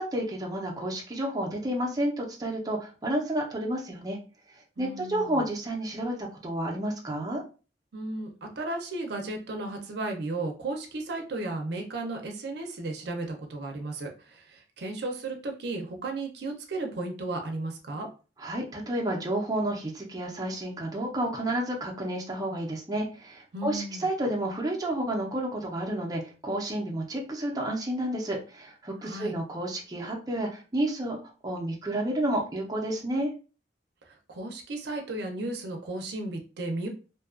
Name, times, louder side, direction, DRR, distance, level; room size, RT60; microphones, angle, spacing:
voice 1, 0.0-4.2 4.8-7.4 18.4-31.2 31.4-33.3, right 1 dB, 20° right, -1 dB, 0.5 m, -30 dB
voice 2, 4.8-5.5 7.9-18.1 23.5-24.1 29.0-29.3 34.1-36.9, right 2 dB, 70° right, 3 dB, 0.5 m, -34 dB
2.6 x 2.3 x 2.4 m, 0.34 s
head